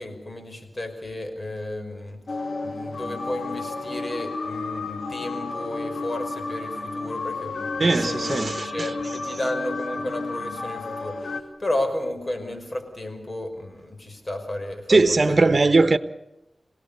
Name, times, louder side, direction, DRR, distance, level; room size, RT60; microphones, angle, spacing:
voice 1, 0.0-2.2 2.6-11.2 11.6-15.9, left 1 dB, 40° left, 5.5 m, -32 dB
sound 1, 2.3-11.4, left 3 dB, 80° left, 2.2 m, -32 dB
voice 2, 7.8-9.1 14.9-16.0, right 3 dB, 50° right, 1.2 m, -20 dB
27.0 x 18.0 x 6.9 m
cardioid pair, 45°, 0 cm